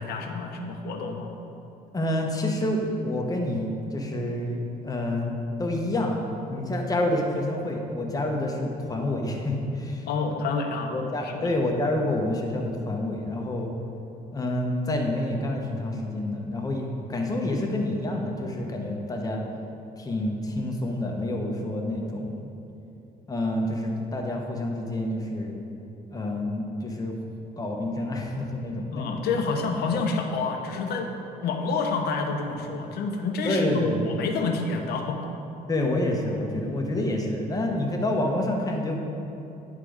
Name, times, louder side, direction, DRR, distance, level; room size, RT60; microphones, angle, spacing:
voice 1, 0.0-1.3 10.1-10.9 11.2-11.5 28.9-31.1 31.4-35.2, left 4 dB, 70° left, 3 dB, 0.9 m, -28 dB
voice 2, 1.9-10.1 10.9-13.7 14.3-19.4 20.0-22.5 23.3-25.5 26.1-27.1 27.6-29.3 29.9-30.0 33.4-34.2 35.7-39.0, left 1 dB, 20° left, 1 dB, 1.0 m, -28 dB
9.8 x 3.8 x 5.0 m, 2.9 s
cardioid pair, 110°, 17 cm